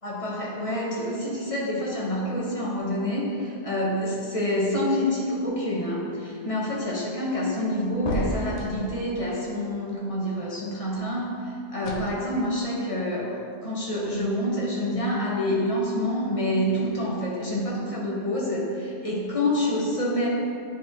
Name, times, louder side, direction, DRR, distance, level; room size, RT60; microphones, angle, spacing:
voice 1, 0.0-20.3, left 1 dB, 30° left, -5 dB, 1.3 m, -27 dB
sound 1, 8.0-8.9 11.8-12.1, left 1 dB, 85° left, 1.0 m, -30 dB
10.0 x 4.4 x 3.1 m, 2.4 s
omnidirectional pair, 1.1 m